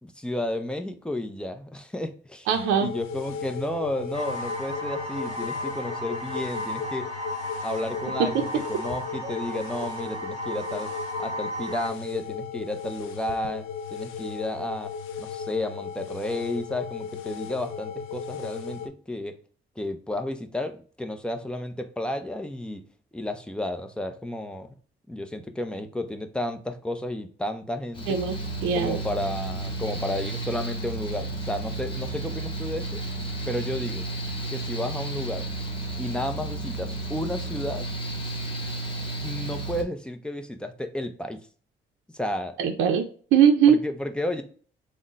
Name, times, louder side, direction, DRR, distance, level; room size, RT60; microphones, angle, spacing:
voice 1, 0.0-2.5 2.8-7.1 7.6-10.9 11.2-13.6 13.9-14.9 15.2-19.3 19.8-22.8 23.1-24.7 25.1-28.2 28.7-33.0 33.5-34.0 34.5-35.5 36.0-37.9 39.2-41.4 42.1-42.6 43.7-44.4, left 1 dB, 5° left, 6 dB, 0.5 m, -32 dB
sound 1, 2.5-18.9, left 6 dB, 85° left, 0.5 m, -36 dB
voice 2, 2.5-2.9 8.3-8.4 9.2-9.3 28.1-28.3 28.6-29.0 42.6-43.0 43.3-43.8, right 8 dB, 85° right, 4 dB, 0.5 m, -20 dB
sound 2, 4.1-11.9, equal, 35° right, 1.3 m, -35 dB
Mechanical fan, 27.9-39.8, right 2 dB, 25° left, 1.0 m, -32 dB
3.7 x 2.1 x 3.8 m, 0.42 s
cardioid pair, 90°, 20 cm